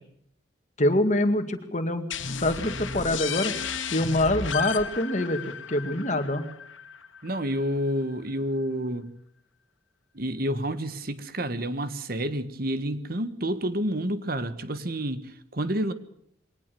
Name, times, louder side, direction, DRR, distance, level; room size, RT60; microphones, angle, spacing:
voice 1, 0.8-3.5 3.9-5.4 5.7-6.4, left 1 dB, 35° left, 2.1 m, -25 dB
sound 1, 2.1-7.6, left 6 dB, 80° left, 2.2 m, -34 dB
voice 2, 7.2-9.1 10.1-15.9, equal, 50° right, 1.4 m, -29 dB
23.0 x 18.5 x 6.9 m
head